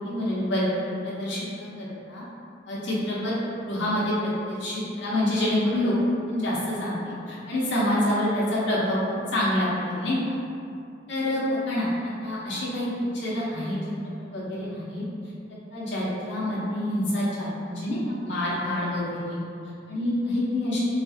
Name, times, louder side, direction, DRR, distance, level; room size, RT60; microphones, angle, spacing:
voice 1, 0.0-2.2 2.7-3.3 3.7-5.9 6.3-10.2 11.1-11.9 12.2-12.9 13.1-13.8 14.3-15.0 15.7-19.4 19.9-20.9, left 1 dB, 65° left, -7 dB, 0.7 m, -27 dB
2.5 x 2.4 x 2.6 m, 2.5 s
head